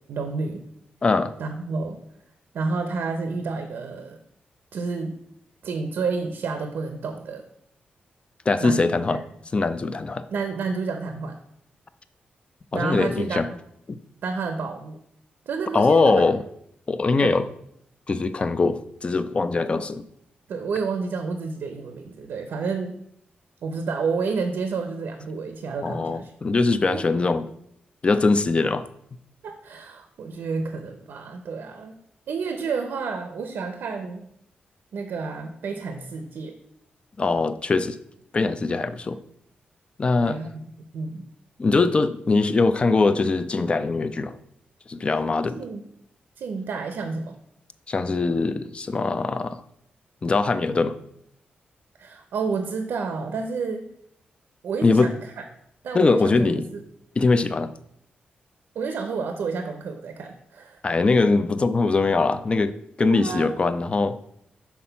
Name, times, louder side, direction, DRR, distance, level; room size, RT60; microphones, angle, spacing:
voice 1, 0.1-0.6 1.4-2.0 2.5-4.2 4.7-5.2 5.6-7.4 8.6-9.2 10.3-11.4 12.7-13.4 14.2-15.0 15.5-16.2 17.2-17.4 20.5-22.9 23.6-26.3 26.9-27.0 29.4-32.0 32.3-34.2 34.9-36.6 40.2-40.6 40.9-41.2 45.5-45.8 46.4-47.4 52.0-53.9 54.6-55.4 55.8-56.8 58.7-60.8 63.0-63.5, right 4 dB, 85° right, 6 dB, 0.6 m, -30 dB
voice 2, 1.0-1.3 8.5-9.2 9.5-10.2 12.7-13.5 13.9-14.0 15.7-16.4 16.9-17.4 18.1-20.1 25.8-27.5 28.0-28.8 37.2-38.0 38.3-39.2 40.0-40.4 41.6-44.3 44.9-45.6 47.9-49.6 50.2-51.0 54.8-55.1 55.9-56.7 57.2-57.7 60.8-64.2, left 3 dB, 30° left, 12 dB, 0.4 m, -22 dB
5.9 x 4.2 x 5.6 m, 0.75 s
wide cardioid pair, 115°, 4 cm